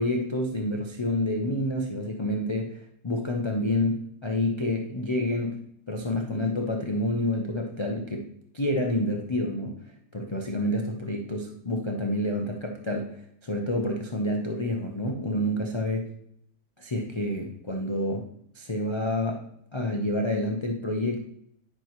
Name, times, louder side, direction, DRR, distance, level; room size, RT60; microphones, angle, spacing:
voice 1, 0.0-5.6 5.9-8.3 8.5-9.8 10.1-16.1 16.8-18.3 18.5-19.4 19.7-21.2, left 1 dB, 30° left, 1 dB, 0.5 m, -28 dB
9.8 x 5.9 x 3.1 m, 0.71 s
omnidirectional pair, 1.6 m